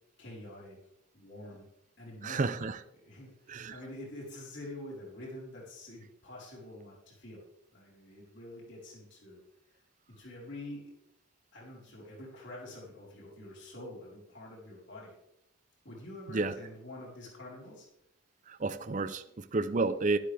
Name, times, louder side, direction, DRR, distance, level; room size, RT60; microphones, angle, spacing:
voice 1, 0.2-0.8 1.1-1.7 2.0-2.6 3.0-7.4 7.7-9.4 10.1-10.9 11.5-15.1 15.8-17.9, left 1 dB, 55° left, -4 dB, 4.2 m, -46 dB
voice 2, 2.2-2.8 3.5-3.8 16.3-16.5 18.5-20.2, right 3 dB, 35° right, 11 dB, 0.5 m, -31 dB
12.0 x 12.0 x 3.4 m, 0.79 s
head